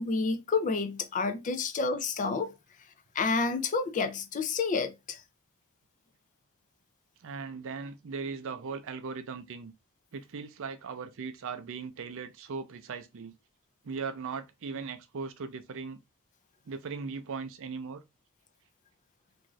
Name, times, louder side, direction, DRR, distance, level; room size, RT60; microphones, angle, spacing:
voice 1, 0.0-2.5 3.1-5.2, left 4 dB, 35° left, 0.4 m, -29 dB
voice 2, 7.2-9.7 10.1-13.3 13.8-16.0 16.7-18.0, right 5 dB, 60° right, 0.4 m, -38 dB
2.6 x 2.3 x 3.1 m
head